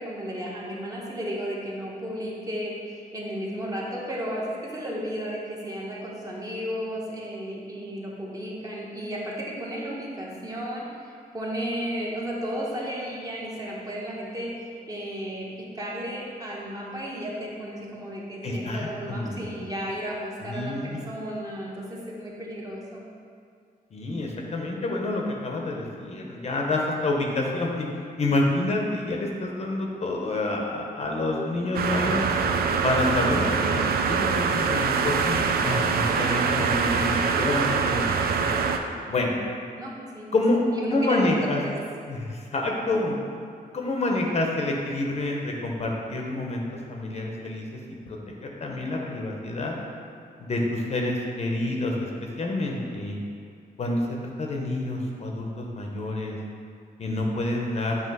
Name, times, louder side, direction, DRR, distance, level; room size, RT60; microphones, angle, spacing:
voice 1, 0.0-23.0 33.5-33.9 39.8-40.3 40.7-41.3 41.6-41.8, equal, 25° right, -4 dB, 0.9 m, -34 dB
voice 2, 18.4-19.6 20.4-21.0 23.9-27.9 28.2-32.2 32.8-35.4 35.6-38.1 38.4-38.7 39.1-39.3 40.3-40.6 40.9-41.6 42.1-43.2 43.7-47.8 48.1-49.7 50.4-53.2 53.8-56.4 57.0-58.0, left 2 dB, 45° left, 0 dB, 0.7 m, -28 dB
sound 1, 31.7-38.8, right 5 dB, 80° right, 0.4 m, -24 dB
7.9 x 2.8 x 5.3 m, 2.2 s
wide cardioid pair, 175°, 16 cm